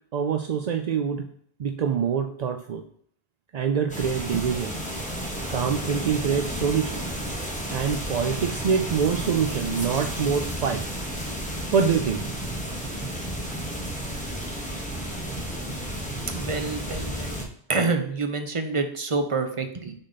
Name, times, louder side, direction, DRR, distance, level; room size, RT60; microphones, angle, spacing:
voice 1, 0.1-1.3 1.6-2.8 3.5-4.7 5.5-7.0 7.7-10.8 11.7-12.2, right 6 dB, 55° right, 6 dB, 0.5 m, -25 dB
sound 1, 3.9-17.4, right 1 dB, 5° left, 1.2 m, -32 dB
voice 2, 16.3-17.4 17.7-19.9, right 3 dB, 35° right, 6 dB, 0.8 m, -27 dB
6.4 x 4.1 x 4.0 m, 0.64 s
omnidirectional pair, 1.1 m